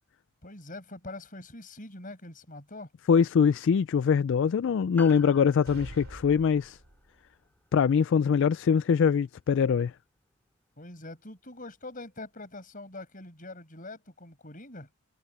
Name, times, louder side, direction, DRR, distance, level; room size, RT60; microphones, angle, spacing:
voice 1, 0.4-2.9 10.8-14.9, left 2 dB, 40° left, 6.0 m, -44 dB
voice 2, 3.1-6.8 7.7-9.9, left 6 dB, 55° left, 0.3 m, -23 dB
Piano, 5.0-9.6 9.8-9.9, left 1 dB, 10° left, 3.1 m, -51 dB
sound 1, 5.7-7.3, right 1 dB, 65° right, 2.9 m, -46 dB
head